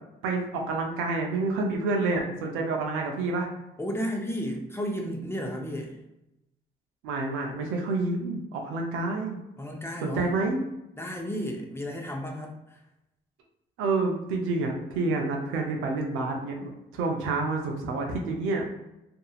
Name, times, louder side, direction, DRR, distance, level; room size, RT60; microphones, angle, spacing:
voice 1, 0.2-3.5 7.0-9.4 10.0-10.6 13.8-18.7, right 3 dB, 85° right, 1 dB, 0.6 m, -28 dB
voice 2, 3.8-6.0 9.6-10.3 11.0-12.8, equal, 10° left, 1 dB, 0.6 m, -33 dB
2.7 x 2.5 x 2.3 m, 0.91 s
supercardioid pair, 60°, 20 cm